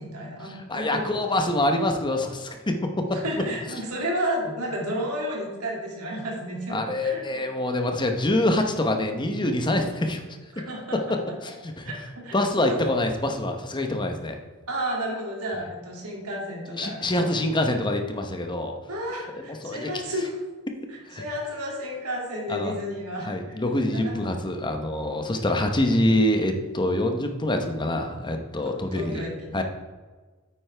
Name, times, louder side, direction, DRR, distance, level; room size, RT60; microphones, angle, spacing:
voice 1, 0.0-1.0 3.1-7.5 10.5-11.2 11.8-12.9 14.7-17.3 18.9-20.4 20.9-23.6 23.9-24.2 28.6-29.6, equal, 85° right, -2 dB, 2.5 m, -32 dB
voice 2, 0.7-3.2 6.7-10.2 11.1-11.2 11.4-11.9 12.3-14.3 16.7-18.7 19.6-19.9 21.1-21.2 22.5-22.7 23.3-29.2 29.5-29.6, left 1 dB, 20° left, 5 dB, 0.9 m, -25 dB
9.0 x 8.5 x 3.4 m, 1.3 s
head